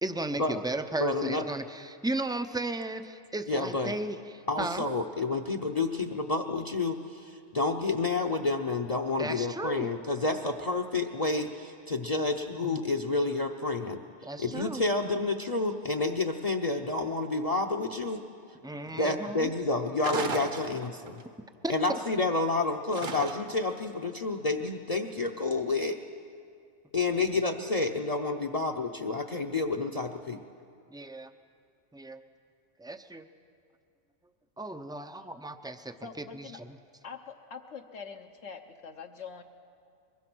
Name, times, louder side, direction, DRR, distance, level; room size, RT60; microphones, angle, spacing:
voice 1, 0.0-4.8 9.2-9.9 14.2-14.8 18.6-19.5 21.6-21.7 30.9-31.3 31.9-32.2 32.8-33.3 34.6-36.8, right 2 dB, 5° right, 9 dB, 0.5 m, -35 dB
voice 2, 1.0-1.4 3.5-3.9 4.5-14.0 14.4-18.2 18.9-21.2 21.7-26.0 26.9-30.4, left 3 dB, 35° left, 6 dB, 0.8 m, -29 dB
sound 1, 20.0-21.2 22.9-23.7, right 4 dB, 45° right, 1.2 m, -35 dB
voice 3, 36.0-36.6 37.0-39.4, left 6 dB, 70° left, 3 dB, 1.2 m, -44 dB
23.5 x 21.5 x 6.2 m, 2.3 s
omnidirectional pair, 1.2 m